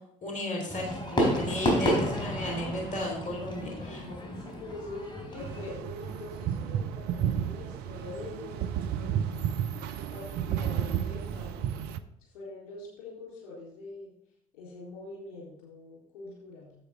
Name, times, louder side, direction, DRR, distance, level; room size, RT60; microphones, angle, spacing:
voice 1, 0.2-4.0, left 1 dB, 45° left, 0 dB, 3.4 m, -34 dB
Fireworks, 0.7-5.7, equal, 25° left, 4.1 m, -31 dB
voice 2, 3.5-11.8 12.2-14.1 14.5-16.7, left 2 dB, 75° left, -3 dB, 3.8 m, -44 dB
sound 1, 5.4-12.0, right 9 dB, 65° right, 0.6 m, -32 dB
10.5 x 7.9 x 3.7 m, 0.77 s
hypercardioid pair, 55°, 18 cm